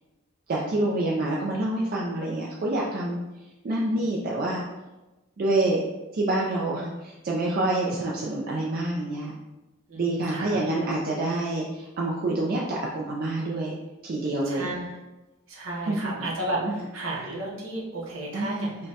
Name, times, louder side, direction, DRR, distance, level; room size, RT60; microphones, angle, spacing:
voice 1, 0.5-3.2 3.6-4.6 5.4-5.8 6.1-9.3 10.0-13.7 14.0-14.7 15.9-16.0 16.6-16.7 18.3-18.7, right 2 dB, 45° right, -3 dB, 0.4 m, -27 dB
voice 2, 3.8-4.1 9.9-10.6 14.4-15.0 15.5-18.8, right 2 dB, 70° right, -3 dB, 0.8 m, -33 dB
5.1 x 2.2 x 2.8 m, 1.1 s
head